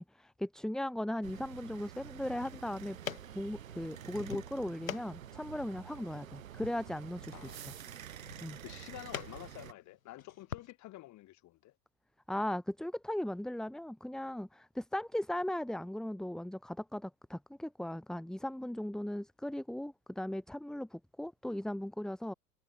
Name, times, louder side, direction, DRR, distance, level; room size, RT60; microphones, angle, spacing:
voice 1, 0.0-3.0 3.3-7.7 8.4-8.6 12.3-22.3, left 1 dB, ahead, 1.2 m, -38 dB
sound 1, 1.2-9.7, right 10 dB, 80° right, 1.5 m, -49 dB
sound 2, 2.2-10.7, left 8 dB, 90° left, 1.1 m, -47 dB
voice 2, 7.3-7.8 8.6-11.7, left 16 dB, 45° left, 5.0 m, -49 dB
hypercardioid pair, 90°, 40 cm